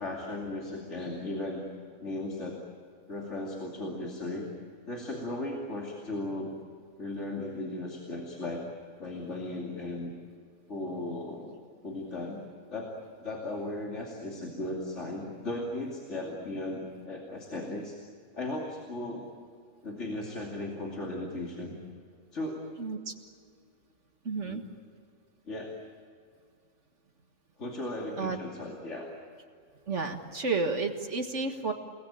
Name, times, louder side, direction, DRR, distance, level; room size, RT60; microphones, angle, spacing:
voice 1, 0.0-1.7 2.0-2.6 3.1-4.5 4.9-6.5 7.0-8.6 9.0-10.1 10.7-11.6 11.8-18.0 18.4-19.3 19.8-21.8 22.3-22.6 24.4-24.6 25.5-25.8 27.6-29.1, left 2 dB, 50° left, -1 dB, 3.0 m, -36 dB
voice 2, 22.8-23.1 24.3-24.6 28.2-28.4 29.9-31.7, right 4 dB, 55° right, 5 dB, 1.9 m, -31 dB
29.5 x 19.5 x 8.9 m, 2.3 s
omnidirectional pair, 1.5 m